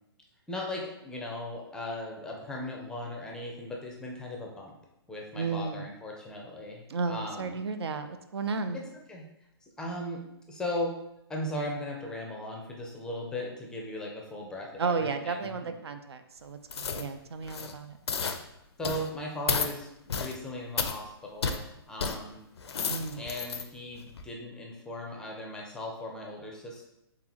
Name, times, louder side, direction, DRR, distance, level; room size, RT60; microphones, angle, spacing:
voice 1, 0.5-4.7 5.1-7.6 8.7-9.3 9.6-11.0 11.3-15.7 18.8-21.6 21.9-22.4 23.2-26.8, left 1 dB, 5° left, 0 dB, 0.5 m, -38 dB
voice 2, 5.3-5.9 6.9-8.8 14.8-18.0 22.9-23.2, right 4 dB, 75° right, 8 dB, 0.5 m, -33 dB
sound 1, 16.7-17.1 17.4-17.7 18.1-18.4 18.8-19.1 19.5-19.7 20.1-20.4 20.8-21.0 21.4-21.6 22.0-22.2 22.6-23.6 24.1-24.2, left 5 dB, 80° left, 0.5 m, -31 dB
3.8 x 3.7 x 2.9 m, 0.83 s
hypercardioid pair, 140°, 14 cm